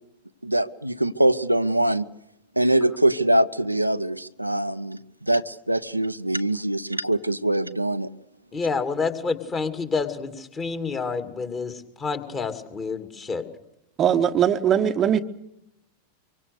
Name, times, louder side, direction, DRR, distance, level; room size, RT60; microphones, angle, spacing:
voice 1, 0.4-2.0 2.6-5.0 5.3-8.1, right 1 dB, 90° right, 8 dB, 0.8 m, -23 dB
voice 2, 8.5-11.7 12.0-13.4, left 4 dB, 20° left, 9 dB, 2.5 m, -28 dB
voice 3, 14.0-15.2, right 9 dB, 25° right, 9 dB, 1.1 m, -20 dB
25.0 x 24.0 x 6.6 m, 0.84 s
figure-of-eight pair, 90°, 0 cm